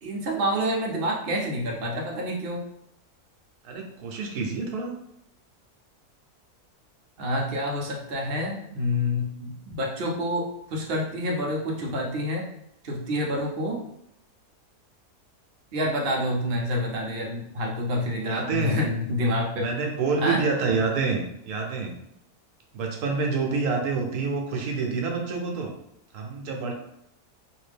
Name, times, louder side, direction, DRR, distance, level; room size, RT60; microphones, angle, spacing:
voice 1, 0.0-2.7 7.2-12.5 12.8-13.8 15.7-19.7 20.2-20.4, left 1 dB, 50° right, -1 dB, 0.8 m, -28 dB
voice 2, 3.6-4.9 18.2-18.8 19.6-21.9 22.7-25.7 26.1-26.7, right 4 dB, 80° right, 2 dB, 1.2 m, -27 dB
3.3 x 2.6 x 3.3 m, 0.75 s
omnidirectional pair, 1.6 m